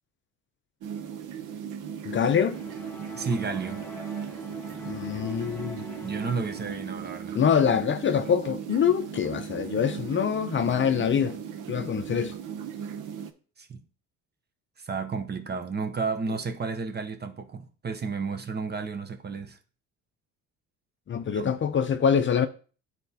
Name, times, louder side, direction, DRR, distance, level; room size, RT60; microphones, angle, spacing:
sound 1, 0.8-13.3, right 8 dB, 65° right, 0.8 m, -37 dB
voice 1, 2.0-2.6 4.9-5.8 7.3-11.4 11.7-12.3 21.1-22.5, left 7 dB, 35° left, 0.5 m, -25 dB
sound 2, 2.5-7.1, left 1 dB, 5° left, 1.0 m, -44 dB
voice 2, 3.1-3.9 6.0-7.4 13.6-13.8 14.8-19.6 21.3-21.5, right 4 dB, 30° right, 0.8 m, -32 dB
10.0 x 4.2 x 2.8 m
cardioid pair, 105°, 33 cm